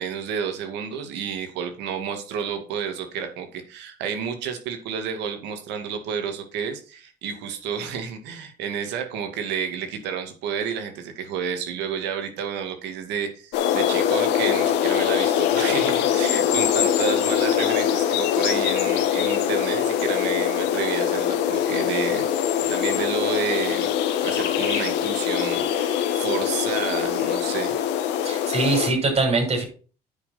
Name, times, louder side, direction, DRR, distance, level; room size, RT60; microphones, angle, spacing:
voice 1, 0.0-22.3 22.7-23.9 24.2-27.7, right 7 dB, 85° right, 6 dB, 2.3 m, -30 dB
sound 1, 13.5-28.9, left 9 dB, 85° left, 1.6 m, -23 dB
voice 2, 28.2-29.6, right 3 dB, 35° right, 2 dB, 6.0 m, -22 dB
9.7 x 5.8 x 5.9 m, 0.38 s
supercardioid pair, 85°, 17 cm